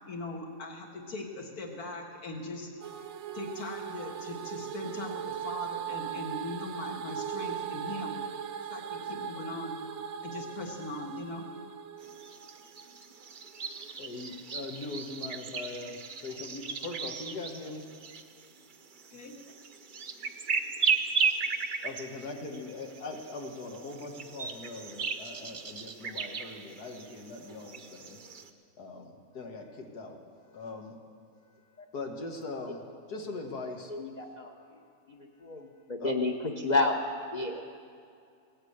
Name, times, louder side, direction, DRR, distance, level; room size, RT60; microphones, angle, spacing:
voice 1, 0.0-2.7 3.3-8.2 8.7-9.8 10.2-11.5 19.1-19.3, left 2 dB, 70° left, 1 dB, 2.1 m, -40 dB
sound 1, 2.8-13.0, right 9 dB, 65° right, 1.0 m, -39 dB
sound 2, 12.0-28.5, right 5 dB, 45° right, 0.6 m, -36 dB
voice 2, 14.0-16.0 16.2-17.8 21.8-28.2 28.8-30.2 30.5-31.0 31.9-32.8 33.1-33.9 34.6-34.7 35.4-36.1, left 3 dB, 90° left, 2 dB, 2.1 m, -41 dB
voice 3, 33.9-34.5 35.1-37.0 37.3-37.6, left 3 dB, 35° left, 2 dB, 0.8 m, -30 dB
17.5 x 9.0 x 8.0 m, 2.4 s
omnidirectional pair, 1.6 m